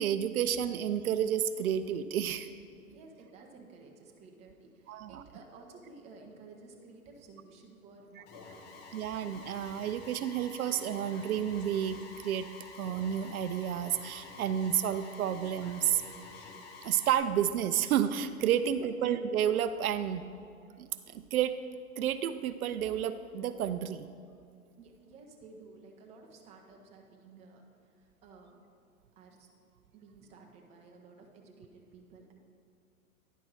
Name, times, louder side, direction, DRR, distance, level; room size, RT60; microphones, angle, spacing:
voice 1, 0.0-2.5 4.9-5.2 8.9-12.5 12.8-16.0 16.8-20.2 20.8-21.6 22.0-24.1, right 9 dB, 75° right, 12 dB, 0.5 m, -31 dB
voice 2, 2.7-9.1 18.7-19.0 24.8-28.6 29.2-29.5 29.9-32.3, right 3 dB, 15° right, 1 dB, 0.7 m, -54 dB
Alarm, 8.3-17.2, left 4 dB, 25° left, 0.8 m, -49 dB
10.0 x 5.3 x 4.6 m, 2.4 s
hypercardioid pair, 130°, 44 cm